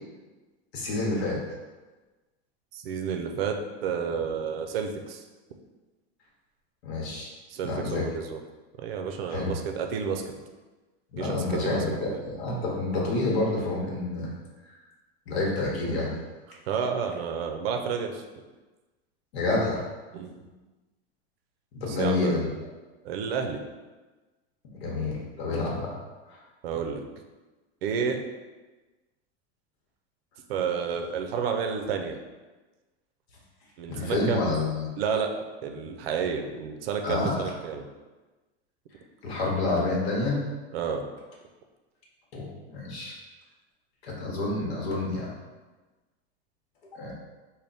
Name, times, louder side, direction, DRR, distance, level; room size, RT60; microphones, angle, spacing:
voice 1, 0.7-1.4 6.8-7.3 7.6-8.1 9.3-9.6 11.1-14.3 15.3-16.1 19.3-19.8 21.7-22.5 24.7-26.0 26.3-26.4 33.9-34.9 37.0-37.5 39.2-40.4 42.3-43.1 44.0-45.3 46.9-47.1, left 2 dB, 70° left, -3 dB, 1.1 m, -28 dB
voice 2, 2.7-5.2 7.5-8.4 8.8-10.2 11.2-11.8 12.1-12.2 16.7-18.2 20.1-20.3 21.9-22.4 23.0-23.6 26.6-27.0 27.8-28.2 30.5-32.2 33.8-34.5 35.0-35.3 35.6-37.8 40.7-41.1, right 6 dB, 65° right, 4 dB, 0.5 m, -30 dB
3.4 x 2.2 x 3.9 m, 1.2 s
supercardioid pair, 175°, 32 cm